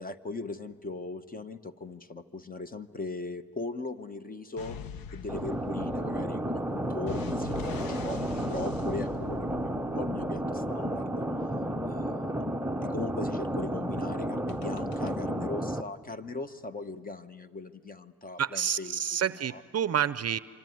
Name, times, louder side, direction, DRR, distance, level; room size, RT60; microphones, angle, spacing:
voice 1, 0.0-4.8 5.1-11.3 11.8-19.0 19.3-19.6, left 3 dB, 25° left, 11 dB, 0.9 m, -39 dB
sound 1, 4.6-10.9 14.5-15.1, left 6 dB, 75° left, 0.9 m, -44 dB
sound 2, 5.3-15.8, right 1 dB, 5° right, 0.7 m, -32 dB
voice 2, 18.4-20.4, right 9 dB, 45° right, 15 dB, 0.6 m, -29 dB
25.5 x 25.5 x 9.3 m, 2.4 s
cardioid pair, 105°, 35 cm